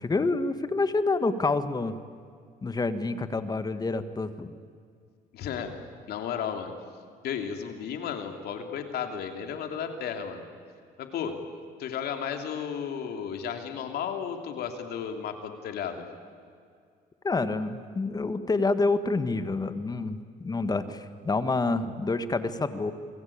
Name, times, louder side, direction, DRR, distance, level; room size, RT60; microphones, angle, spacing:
voice 1, 0.0-2.0 2.6-4.5 17.2-22.9, left 3 dB, 25° left, 11 dB, 1.7 m, -28 dB
voice 2, 5.3-5.7 6.1-6.7 7.2-10.4 11.0-11.4 11.8-16.0, left 7 dB, 70° left, 5 dB, 3.2 m, -33 dB
28.5 x 22.0 x 8.8 m, 2.2 s
cardioid pair, 110°, 17 cm